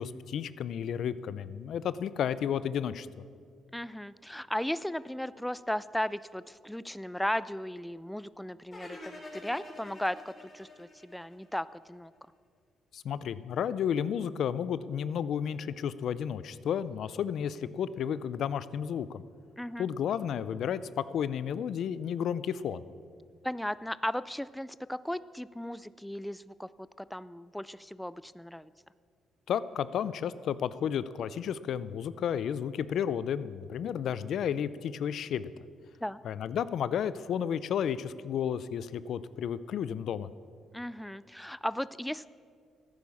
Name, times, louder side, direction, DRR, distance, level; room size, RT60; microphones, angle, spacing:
voice 1, 0.0-3.1 12.9-19.2 19.8-22.8 29.5-35.5 36.2-40.3, left 8 dB, 70° left, 16 dB, 0.5 m, -32 dB
voice 2, 3.7-12.1 19.6-19.9 23.4-28.7 36.0-36.2 40.7-42.3, left 1 dB, 5° left, 17 dB, 0.3 m, -36 dB
sound 1, 8.7-11.9, left 2 dB, 35° left, 3.8 m, -47 dB
13.0 x 9.9 x 7.1 m, 2.1 s
cardioid pair, 90°, 0 cm